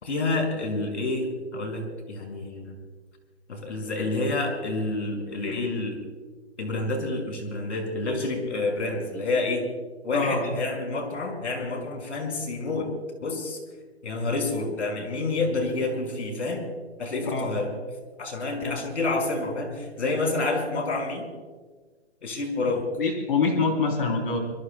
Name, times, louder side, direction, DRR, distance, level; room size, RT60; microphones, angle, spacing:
voice 1, 0.0-2.8 3.5-6.0 6.6-9.7 10.0-12.9 13.2-13.6 14.0-16.6 17.0-17.8 18.2-21.3 22.2-22.9, left 2 dB, 85° left, 3 dB, 5.4 m, -28 dB
voice 2, 10.1-10.6 17.3-17.7 23.0-24.4, left 4 dB, 50° left, 3 dB, 3.3 m, -25 dB
27.0 x 23.0 x 2.2 m, 1.4 s
hypercardioid pair, 170°, 34 cm